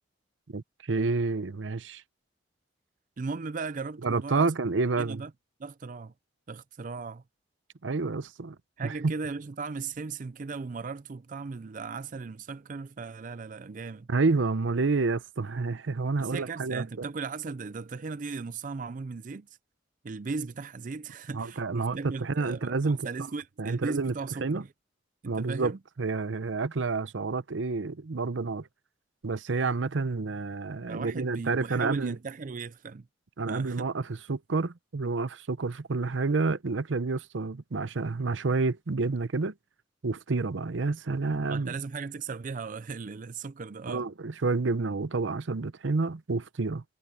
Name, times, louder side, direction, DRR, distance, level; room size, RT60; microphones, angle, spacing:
voice 1, 0.5-2.0 4.0-5.2 7.8-8.6 8.8-9.1 14.1-17.0 21.3-23.1 23.6-24.1 24.4-24.6 25.2-28.7 29.2-32.2 33.4-39.5 40.0-41.7 43.9-46.8, right 3 dB, 80° right, 0.7 m, -29 dB
voice 2, 3.2-4.5 5.0-5.3 5.6-6.1 6.5-7.2 8.8-14.1 16.2-19.6 20.0-24.7 25.2-25.8 30.9-33.1 33.5-33.9 41.5-44.1, right 4 dB, 45° right, 0.5 m, -37 dB
head